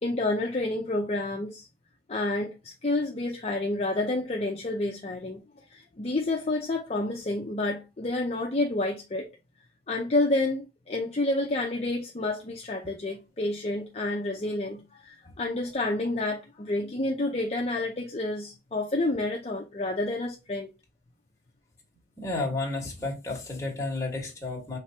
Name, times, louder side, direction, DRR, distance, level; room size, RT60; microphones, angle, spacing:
voice 1, 0.0-1.7 2.1-5.4 5.7-9.3 9.9-20.7, left 2 dB, 35° left, 0.6 m, -29 dB
voice 2, 22.2-24.8, left 2 dB, 20° left, 1.5 m, -32 dB
5.0 x 3.3 x 2.8 m
head